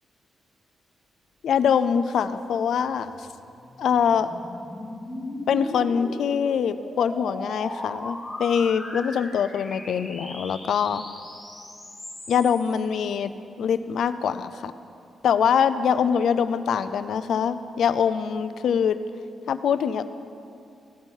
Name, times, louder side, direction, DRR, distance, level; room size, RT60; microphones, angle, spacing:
voice 1, 1.4-3.1 3.8-4.3 5.5-11.0 12.3-13.3 13.6-14.7 15.2-19.0 19.5-20.0, left 7 dB, 75° left, 12 dB, 0.4 m, -23 dB
sound 1, 3.1-12.8, left 1 dB, 25° left, 2.7 m, -38 dB
15.0 x 5.5 x 4.5 m, 2.5 s
cardioid pair, 125°, 0 cm